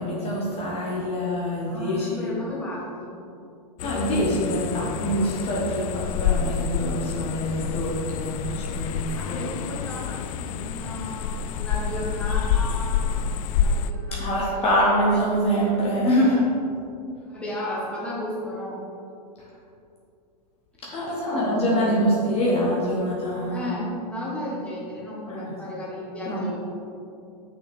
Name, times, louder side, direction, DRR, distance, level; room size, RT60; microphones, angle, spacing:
voice 1, 0.0-2.3 3.8-9.0 9.2-9.5 14.1-16.4 19.4-19.5 20.8-23.7 25.3-25.5 26.2-26.5, equal, 30° left, -5 dB, 1.4 m, -25 dB
voice 2, 1.6-3.2 9.2-11.3 11.6-14.6 16.2-16.4 17.3-18.8 21.1-22.1 23.5-26.6, left 1 dB, 5° left, -6 dB, 1.7 m, -34 dB
sound 1, 3.8-13.9, left 7 dB, 55° left, 0.4 m, -28 dB
7.0 x 6.0 x 3.7 m, 2.6 s
hypercardioid pair, 125°, 21 cm